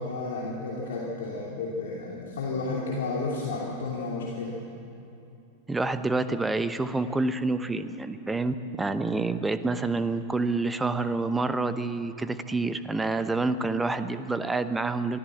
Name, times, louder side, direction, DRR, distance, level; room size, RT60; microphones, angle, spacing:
voice 1, 0.0-4.6, left 3 dB, 60° left, -4 dB, 2.9 m, -32 dB
voice 2, 5.7-15.2, right 3 dB, 10° right, 12 dB, 0.9 m, -28 dB
24.0 x 15.5 x 7.4 m, 2.7 s
figure-of-eight pair, 90°, 0 cm